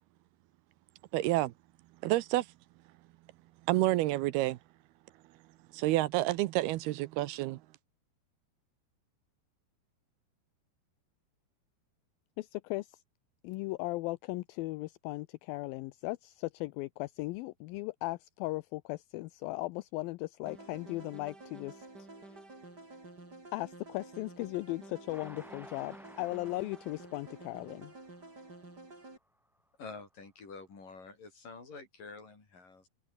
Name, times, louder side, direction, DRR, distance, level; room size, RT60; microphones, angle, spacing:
voice 1, 1.1-1.5 2.0-2.5 3.7-4.6 5.7-7.6, right 17 dB, 80° right, 2.6 m, -29 dB
voice 2, 12.4-13.0 13.4-22.4 23.5-27.9, left 20 dB, 80° left, 2.2 m, -37 dB
sound 1, 20.5-29.2, right 2 dB, 25° right, 6.7 m, -50 dB
Train, 25.1-28.6 29.1-29.2 29.5-29.6, equal, ahead, 6.6 m, -55 dB
voice 3, 29.8-32.9, left 4 dB, 55° left, 8.6 m, -48 dB
omnidirectional pair, 4.7 m